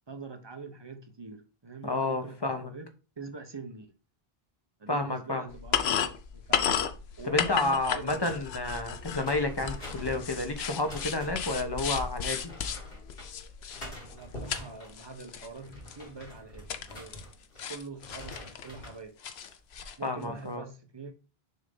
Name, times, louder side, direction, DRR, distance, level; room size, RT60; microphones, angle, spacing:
voice 1, 0.1-2.9 3.2-3.9 4.8-6.8 7.2-8.5 14.1-17.2 17.7-19.2 20.0-21.1, right 4 dB, 30° right, 0.8 m, -44 dB
voice 2, 1.8-2.7 4.9-5.5 7.3-12.5 20.0-20.7, left 2 dB, 25° left, 0.8 m, -30 dB
sound 1, 5.5-14.6 14.9-15.5 15.9-16.0 16.7-17.3 17.6-18.9 19.2-20.0, left 8 dB, 90° left, 0.9 m, -34 dB
sound 2, 9.1-11.6 12.4-13.3 13.7-15.0 15.4-17.6 17.9-19.0 19.5-19.9, left 1 dB, 65° left, 2.4 m, -45 dB
6.6 x 2.7 x 5.2 m
omnidirectional pair, 1.0 m